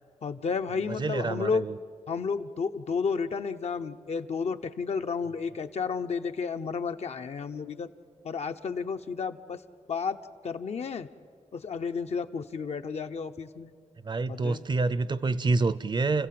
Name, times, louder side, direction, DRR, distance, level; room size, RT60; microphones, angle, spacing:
voice 1, 0.2-1.7 2.1-7.9 8.2-9.6 9.9-10.2 10.4-11.1 11.5-13.7 14.3-14.6, left 5 dB, 60° left, 7 dB, 0.9 m, -32 dB
voice 2, 1.0-1.8 14.0-16.3, right 3 dB, 40° right, 17 dB, 0.6 m, -27 dB
29.5 x 15.5 x 7.7 m, 2.2 s
wide cardioid pair, 100°, 12 cm